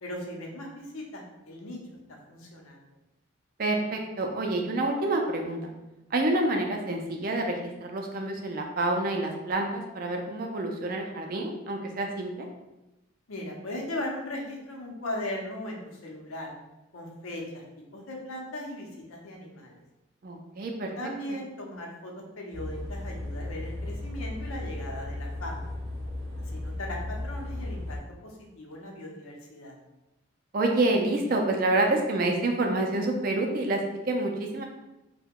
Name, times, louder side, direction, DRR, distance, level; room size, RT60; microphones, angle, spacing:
voice 1, 0.0-1.8 2.3-2.8 13.3-16.5 16.9-17.6 17.9-19.8 21.0-25.7 26.4-28.0 28.2-29.8, left 1 dB, 90° left, 0 dB, 0.7 m, -38 dB
voice 2, 3.6-5.7 6.1-12.5 20.2-20.9 30.5-34.6, right 2 dB, 45° right, 2 dB, 0.4 m, -28 dB
sound 1, 22.5-28.0, left 1 dB, 30° right, 0.8 m, -35 dB
2.8 x 2.2 x 3.6 m, 0.99 s
head